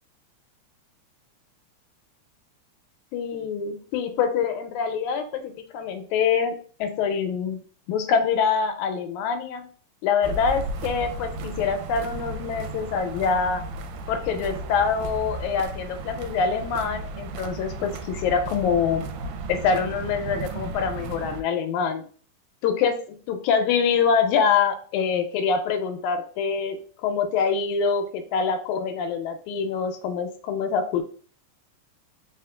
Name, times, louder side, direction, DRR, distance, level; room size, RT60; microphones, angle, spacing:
voice 1, 3.1-7.6 7.9-9.7 10.0-13.6 14.1-19.0 19.5-22.1 22.6-26.8 27.0-31.0, left 6 dB, 90° left, 7 dB, 2.0 m, -25 dB
sound 1, 10.2-21.4, right 3 dB, 85° right, 2.0 m, -34 dB
4.3 x 3.6 x 2.3 m, 0.43 s
omnidirectional pair, 3.4 m